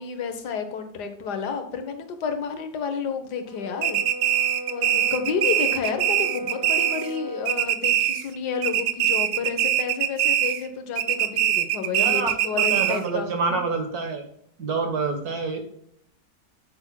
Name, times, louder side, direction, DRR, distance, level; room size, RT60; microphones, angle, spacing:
voice 1, 0.0-4.0 4.7-13.3, left 6 dB, 75° left, 7 dB, 1.6 m, -30 dB
Brass instrument, 3.4-7.7, equal, 20° right, 0.6 m, -36 dB
sound 1, 3.8-7.2 7.5-8.4 8.6-10.7 11.0-13.1, right 11 dB, 85° right, 1.2 m, -23 dB
voice 2, 12.0-14.2 14.6-15.6, right 4 dB, 65° right, 5 dB, 1.8 m, -27 dB
8.6 x 8.1 x 2.2 m, 0.69 s
omnidirectional pair, 1.8 m